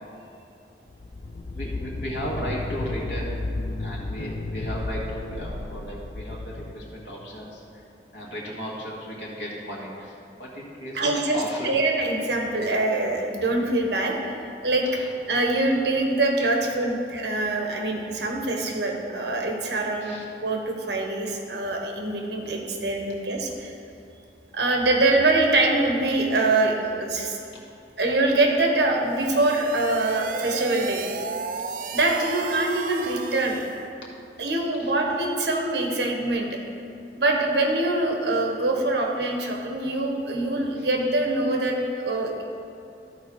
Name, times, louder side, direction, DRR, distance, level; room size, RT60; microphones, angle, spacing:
sound 1, 0.9-7.3, left 2 dB, 50° left, 0.4 m, -33 dB
voice 1, 1.5-3.4 3.8-7.8 8.1-11.8 14.9-15.1 20.0-20.3 34.8-34.9 40.8-40.9, equal, 80° left, -4 dB, 2.0 m, -35 dB
voice 2, 10.9-14.8 15.3-20.2 20.4-23.7 24.5-27.4 28.0-31.0 31.9-33.6 34.4-36.5 37.1-42.4, right 2 dB, 75° right, 1 dB, 1.2 m, -24 dB
sound 2, 29.0-33.8, right 4 dB, 50° right, 0.4 m, -33 dB
13.5 x 4.6 x 4.7 m, 2.7 s
head